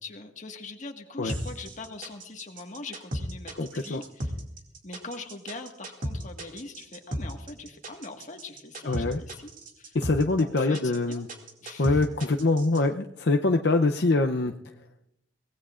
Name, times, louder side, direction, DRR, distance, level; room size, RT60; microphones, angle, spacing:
voice 1, 0.0-4.3 4.8-10.0 10.4-11.2 11.6-12.0, left 3 dB, 45° left, 3 dB, 1.7 m, -42 dB
sound 1, 1.3-12.8, right 1 dB, 50° right, 2.4 m, -35 dB
voice 2, 3.5-4.0 8.8-9.2 9.9-11.3 11.8-14.5, left 3 dB, 65° left, 3 dB, 0.7 m, -24 dB
24.0 x 18.0 x 2.5 m, 0.79 s
head